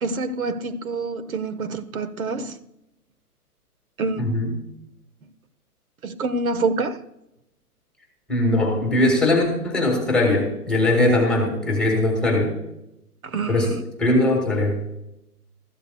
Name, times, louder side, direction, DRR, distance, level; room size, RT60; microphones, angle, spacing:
voice 1, 0.0-2.5 4.0-4.3 6.0-7.0 13.2-13.8, right 3 dB, 60° right, 1.2 m, -27 dB
voice 2, 4.2-4.6 8.3-12.5 13.5-14.8, left 1 dB, ahead, 2.0 m, -20 dB
14.5 x 12.5 x 2.3 m
figure-of-eight pair, 135°, 46 cm